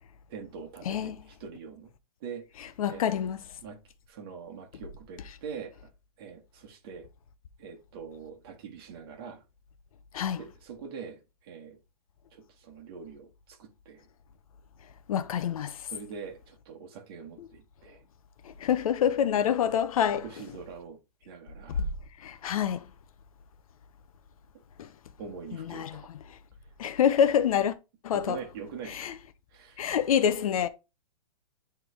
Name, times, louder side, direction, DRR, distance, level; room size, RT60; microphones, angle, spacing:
voice 1, 0.3-1.9 2.2-2.4 2.9-3.0 3.6-3.8 4.1-5.8 6.2-7.1 7.6-9.4 10.3-11.8 12.3-14.1 15.9-18.0 19.2-19.4 20.2-21.0 21.3-21.8 25.2-26.1 28.1-29.1 29.5-29.8, right 6 dB, 40° right, 1.5 m, -43 dB
voice 2, 0.9-1.2 2.8-3.4 10.1-10.4 15.1-15.8 17.4-17.5 18.6-20.2 22.2-22.8 24.8-24.9 25.7-26.0 26.8-27.7 28.0-28.4 28.9-29.1 29.8-30.7, left 8 dB, 60° left, 0.6 m, -26 dB
9.0 x 3.3 x 3.3 m
hypercardioid pair, 170°, 20 cm